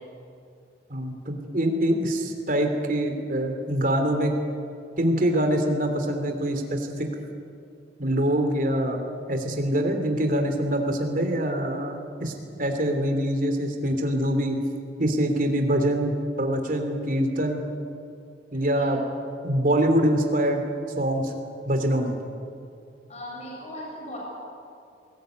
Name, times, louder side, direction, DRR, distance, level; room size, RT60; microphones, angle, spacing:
voice 1, 0.9-4.3 5.0-7.1 8.0-12.3 12.6-14.6 15.0-17.6 18.5-19.0 19.4-20.6 21.0-21.3 21.6-22.2, right 1 dB, 50° right, 5 dB, 3.1 m, -24 dB
voice 2, 23.1-24.2, left 1 dB, 40° left, -3 dB, 7.0 m, -38 dB
21.0 x 19.0 x 9.3 m, 2.4 s
head